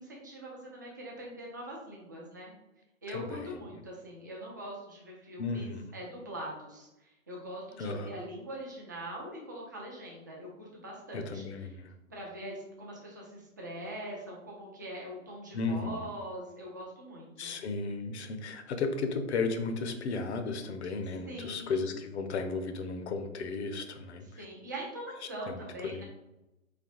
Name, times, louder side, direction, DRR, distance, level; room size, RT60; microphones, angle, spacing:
voice 1, 0.0-2.5 3.0-11.8 12.1-17.5 21.3-21.9 24.4-26.0, right 1 dB, 15° right, -3 dB, 0.4 m, -43 dB
voice 2, 3.1-3.6 5.4-5.9 7.8-8.2 11.1-11.9 15.5-16.0 17.4-24.4 25.5-26.0, left 4 dB, 55° left, 7 dB, 0.7 m, -34 dB
4.1 x 2.8 x 3.1 m, 0.96 s
hypercardioid pair, 145°, 41 cm